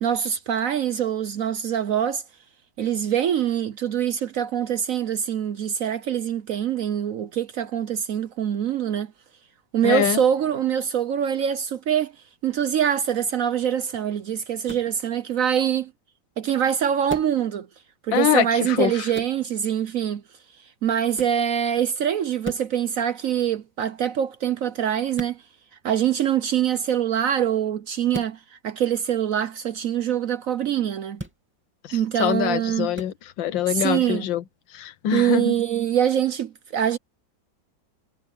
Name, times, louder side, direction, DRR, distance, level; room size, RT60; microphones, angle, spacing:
voice 1, 0.0-2.2 2.8-9.1 9.7-12.1 12.4-15.9 16.4-17.7 18.0-20.2 20.8-25.4 25.8-31.2 31.9-32.9 33.7-34.3 35.1-37.0, right 9 dB, 60° right, 0.9 m, -24 dB
voice 2, 9.8-10.2 18.1-19.1 31.8-34.4 34.7-35.6, left 10 dB, 85° left, 1.6 m, -24 dB
sound 1, 14.7-14.9 17.1-17.4 19.1-19.4 21.1-21.4 22.4-22.7 25.1-25.4 28.1-28.4 31.1-31.4 32.9-33.1, equal, 5° right, 2.7 m, -35 dB
omnidirectional pair, 2.0 m